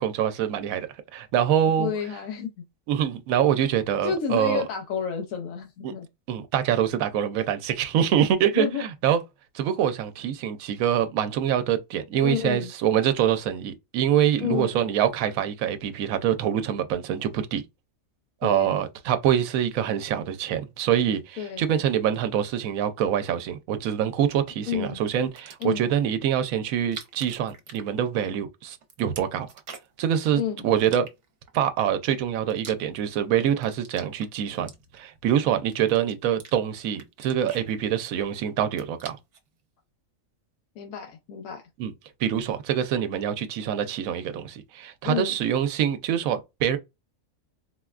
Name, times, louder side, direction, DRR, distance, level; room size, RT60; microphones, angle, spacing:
voice 1, 0.0-1.9 2.9-4.6 5.8-5.9 6.3-9.2 9.5-17.6 18.4-29.5 30.0-31.1 31.5-39.2 41.8-41.9 42.2-46.8, right 9 dB, 90° right, 1.0 m, -25 dB
voice 2, 1.8-2.5 4.0-6.1 8.5-8.8 12.2-12.7 14.4-14.8 18.4-18.8 21.4-21.7 24.7-25.0 25.6-25.9 30.3-30.7 40.8-41.6 45.0-45.4, left 8 dB, 90° left, 1.1 m, -30 dB
sound 1, 25.2-25.9 26.7-28.4 28.7-30.1 30.8-31.6 32.1-33.2 33.5-35.2 35.7-36.6 36.9-38.3 38.6-39.5, right 6 dB, 65° right, 1.0 m, -45 dB
4.2 x 2.1 x 2.3 m
omnidirectional pair, 1.4 m